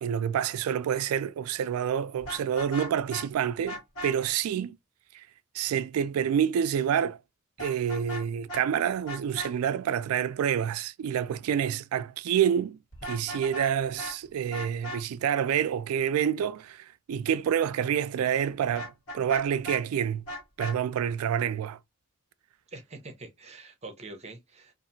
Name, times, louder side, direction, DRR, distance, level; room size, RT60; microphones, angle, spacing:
voice 1, 0.0-4.8 5.1-5.2 5.5-7.2 7.6-12.8 13.1-20.2 20.6-21.8, right 8 dB, 85° right, 0.3 m, -28 dB
Vehicle horn car horn honking, 2.2-3.3 3.7-4.1 7.6-8.2 8.5-8.6 9.1-9.5 12.9-13.7 14.0-14.1 14.5-15.0 18.7-19.8 20.3-20.8, equal, 70° left, 1.5 m, -37 dB
voice 2, 22.7-24.7, right 2 dB, 30° right, 0.7 m, -44 dB
2.8 x 2.5 x 2.5 m
head